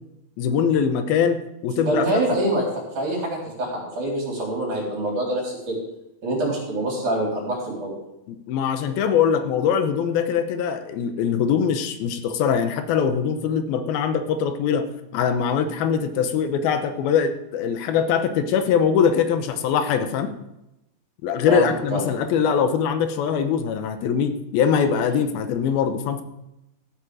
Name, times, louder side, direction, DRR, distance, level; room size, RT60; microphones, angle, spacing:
voice 1, 0.4-2.1 8.3-20.3 21.2-26.2, left 7 dB, 85° left, 9 dB, 2.8 m, -22 dB
voice 2, 1.8-2.7 3.0-5.7 6.2-8.0 21.5-22.0, right 1 dB, 55° right, -3 dB, 5.2 m, -25 dB
15.0 x 8.8 x 4.9 m, 0.90 s
omnidirectional pair, 4.2 m